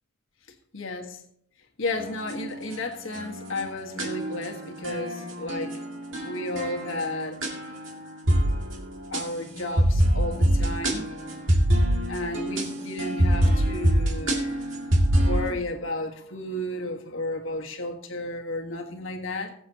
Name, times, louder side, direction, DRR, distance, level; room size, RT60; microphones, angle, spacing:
voice 1, 0.7-1.2 1.8-5.8 6.2-7.4 9.1-11.1 12.1-14.5 15.2-19.5, left 2 dB, 85° left, 1.5 m, -33 dB
sound 1, 2.0-2.7 3.1-15.5, right 1 dB, 75° right, 2.2 m, -25 dB
20.5 x 7.8 x 2.9 m
head